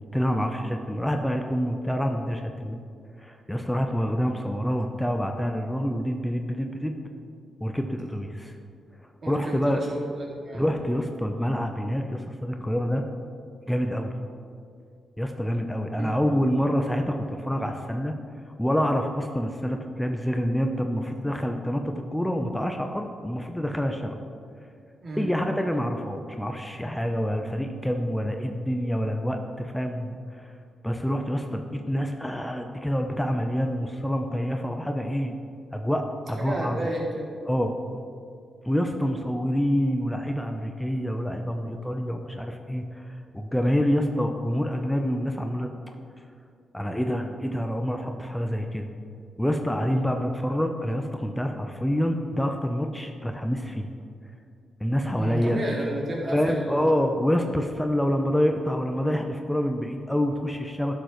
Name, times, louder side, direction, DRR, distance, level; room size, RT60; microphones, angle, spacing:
voice 1, 0.1-2.8 3.2-6.9 7.6-8.5 9.3-9.8 10.5-13.0 13.7-14.1 15.2-18.1 18.6-24.2 25.2-30.5 30.8-35.3 35.7-36.8 37.5-37.7 38.6-45.7 46.7-48.9 49.4-53.9 54.8-55.6 56.3-60.9, equal, 5° left, 4 dB, 0.7 m, -27 dB
voice 2, 9.2-9.9 10.2-10.6 16.0-16.1 25.0-25.3 36.4-37.3 55.2-57.0, right 1 dB, 55° right, -3 dB, 2.2 m, -31 dB
11.0 x 7.0 x 3.2 m, 2.4 s
supercardioid pair, 45°, 0 cm